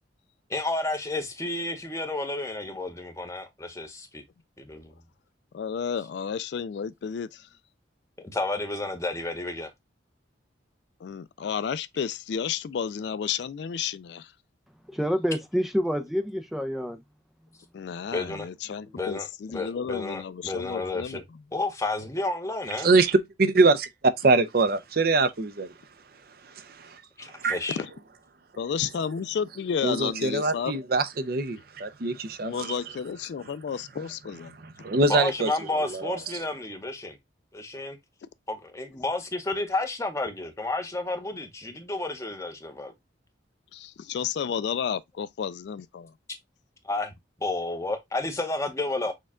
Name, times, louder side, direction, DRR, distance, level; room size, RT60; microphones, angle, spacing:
voice 1, 0.5-4.2 4.6-4.9 8.3-9.7 18.1-18.5 19.0-21.2 21.5-22.9 27.2-27.8 35.1-37.2 37.5-38.0 38.5-42.9 46.8-47.1 47.4-49.1, left 2 dB, 15° left, 0.8 m, -31 dB
voice 2, 5.5-7.5 11.0-14.3 17.7-21.2 28.6-30.7 32.4-34.5 43.7-46.1, left 7 dB, 60° left, 0.3 m, -32 dB
voice 3, 14.9-17.0 18.8-18.9, equal, ahead, 0.4 m, -27 dB
voice 4, 22.8-23.9 24.2-25.7 27.4-27.6 29.8-32.8 34.6-35.5 35.9-36.2, right 3 dB, 50° right, 0.6 m, -23 dB
6.4 x 2.3 x 3.6 m
head